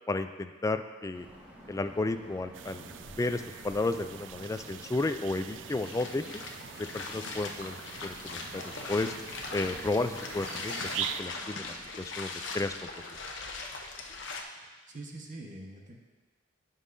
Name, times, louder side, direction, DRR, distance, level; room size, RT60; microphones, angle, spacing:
voice 1, 0.1-1.3 1.7-6.4 6.8-9.1 9.5-11.6 12.0-12.9, left 2 dB, 15° left, 9 dB, 0.3 m, -33 dB
sound 1, 1.1-11.8, equal, 10° right, 1.3 m, -51 dB
sound 2, 2.5-11.2, right 10 dB, 75° right, 0.3 m, -43 dB
sound 3, 5.7-14.4, left 3 dB, 85° left, 0.9 m, -40 dB
voice 2, 14.5-16.0, right 2 dB, 45° right, 0 dB, 1.2 m, -45 dB
16.0 x 5.5 x 2.7 m, 1.4 s
head